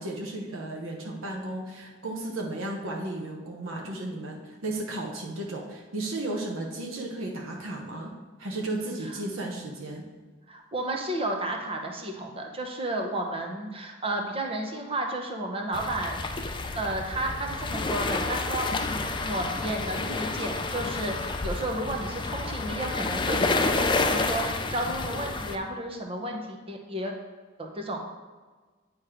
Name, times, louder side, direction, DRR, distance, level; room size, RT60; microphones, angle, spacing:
voice 1, 0.0-8.1 8.4-10.0, right 2 dB, 85° right, -1 dB, 1.0 m, -34 dB
voice 2, 10.5-27.1 27.6-28.0, right 1 dB, 30° right, 2 dB, 0.8 m, -32 dB
sound 1, 15.7-25.6, left 3 dB, 25° left, 0.4 m, -29 dB
9.0 x 3.1 x 5.0 m, 1.4 s
head